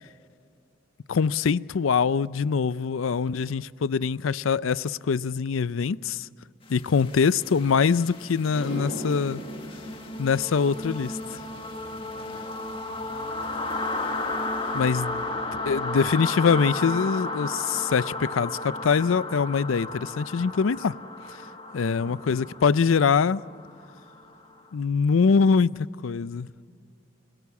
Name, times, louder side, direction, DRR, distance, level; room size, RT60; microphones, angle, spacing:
voice 1, 1.1-6.3 6.7-9.4 10.2-11.4 14.7-15.2 15.7-20.9 21.7-23.4 24.7-26.5, left 5 dB, 90° left, 0.5 m, -23 dB
sound 1, 6.8-24.5, left 2 dB, 25° left, 1.8 m, -34 dB
sound 2, 8.5-16.8 17.1-17.6 21.2-21.3 22.9-23.0 23.3-23.4 23.7-24.2, equal, 55° left, 7.0 m, -42 dB
voice 2, 11.9-12.4 15.1-15.2 26.6-26.7, left 1 dB, ahead, 8.0 m, -48 dB
27.0 x 17.0 x 8.4 m
head